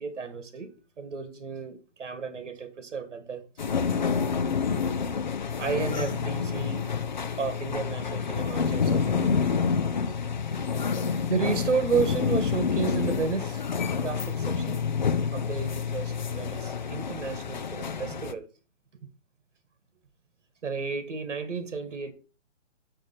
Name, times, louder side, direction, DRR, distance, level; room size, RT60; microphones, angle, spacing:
voice 1, 0.0-3.4 5.5-6.9 7.4-9.4 10.1-10.2 10.5-10.7 11.1-13.7 14.0-14.8 15.3-18.5 20.6-22.1, right 5 dB, 85° right, 1.6 m, -32 dB
sound 1, 3.6-18.3, left 6 dB, 40° left, 0.4 m, -28 dB
6.5 x 5.9 x 5.6 m
hypercardioid pair, 165°, 36 cm